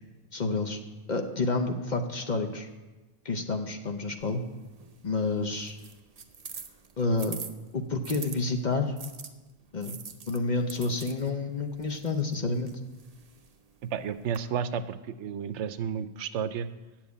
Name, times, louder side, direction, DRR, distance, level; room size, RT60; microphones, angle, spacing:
voice 1, 0.3-0.8 1.1-2.7 3.2-4.4 5.0-5.7 7.0-7.4 7.7-8.9 9.7-10.0 10.3-12.7, left 3 dB, 45° left, 5 dB, 0.8 m, -29 dB
sound 1, 4.2-8.4 9.0-14.4, right 5 dB, 40° right, 0.6 m, -46 dB
voice 2, 13.9-16.7, right 7 dB, 75° right, 13 dB, 0.9 m, -32 dB
9.0 x 7.3 x 8.2 m, 1.2 s
omnidirectional pair, 1.2 m